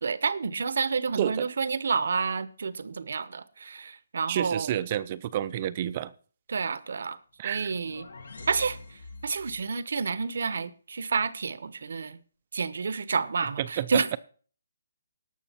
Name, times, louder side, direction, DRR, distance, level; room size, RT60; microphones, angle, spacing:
voice 1, 0.0-4.7 6.5-7.2 7.4-8.1 8.5-12.2 12.5-14.2, right 5 dB, 65° right, 0.8 m, -29 dB
voice 2, 4.3-6.1 7.4-7.7 13.6-13.9, right 11 dB, 30° right, 0.4 m, -29 dB
sound 1, 7.4-9.7, left 3 dB, 80° left, 2.0 m, -45 dB
18.5 x 6.3 x 4.3 m
hypercardioid pair, 165°, 0 cm